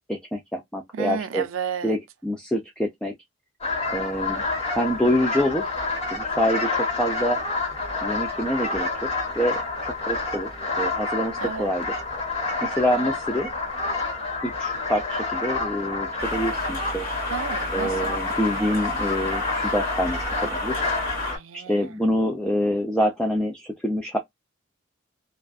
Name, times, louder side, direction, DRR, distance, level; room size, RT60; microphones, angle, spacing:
voice 1, 0.1-1.4 1.8-3.1 3.9-4.4 4.8-5.7 6.1-7.4 8.0-9.1 9.4-9.6 10.1-10.5 10.8-12.0 12.6-13.5 14.4-17.1 17.7-20.8 21.5-24.2, equal, 5° left, 0.3 m, -26 dB
voice 2, 0.9-2.0 11.4-11.7 17.3-18.2 21.2-21.9, right 6 dB, 70° right, 0.4 m, -32 dB
brent goose in Arcachon, 3.6-21.4, left 3 dB, 30° left, 1.4 m, -28 dB
sound 1, 16.2-21.3, equal, 45° left, 1.0 m, -34 dB
2.5 x 2.2 x 2.2 m
head